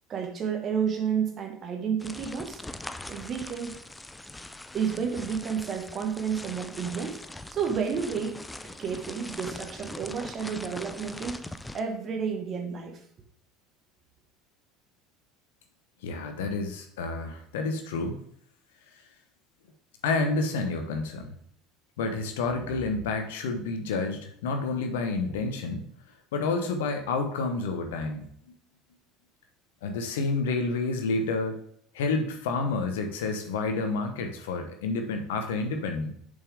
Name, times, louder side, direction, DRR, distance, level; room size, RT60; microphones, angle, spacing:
voice 1, 0.1-2.6 3.1-3.8 4.7-11.4 11.7-13.0, right 7 dB, 40° right, 4 dB, 1.4 m, -31 dB
sound 1, 2.0-11.8, left 2 dB, 10° left, 0.4 m, -42 dB
voice 2, 16.0-18.2 20.0-21.3 22.0-25.9 26.3-28.3 29.8-31.6 31.9-36.1, left 3 dB, 75° left, 6 dB, 1.0 m, -29 dB
6.7 x 5.4 x 3.5 m, 0.65 s
hypercardioid pair, 70°, 0 cm